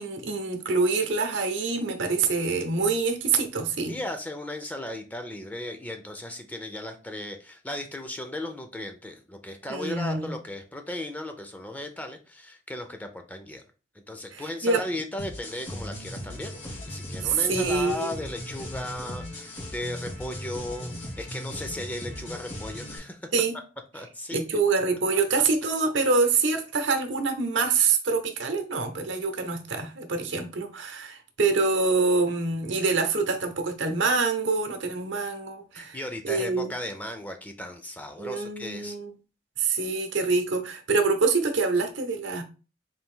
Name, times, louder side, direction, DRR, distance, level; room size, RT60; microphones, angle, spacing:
voice 1, 0.0-4.0 9.7-10.3 14.3-14.8 17.2-18.2 23.3-23.6 24.3-36.0 36.2-36.7 38.2-39.1 39.6-42.4, right 4 dB, 85° right, 0.7 m, -25 dB
voice 2, 3.9-13.6 14.1-23.3 23.9-24.4 35.7-39.0, left 1 dB, 10° left, 0.4 m, -36 dB
sound 1, 15.2-23.0, left 1 dB, 85° left, 1.8 m, -38 dB
4.0 x 2.5 x 3.7 m
head